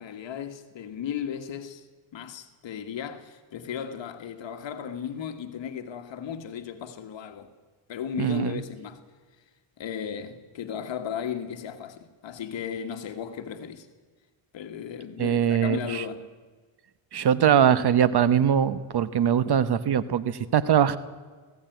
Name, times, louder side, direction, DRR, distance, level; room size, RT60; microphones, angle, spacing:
voice 1, 0.0-1.9 2.1-7.5 7.9-9.0 9.8-13.9 14.5-16.3, left 8 dB, 60° left, 1.7 m, -35 dB
voice 2, 8.2-8.6 15.2-16.0 17.1-21.0, right 8 dB, 50° right, 1.1 m, -22 dB
19.5 x 16.0 x 9.3 m
cardioid pair, 90°, 49 cm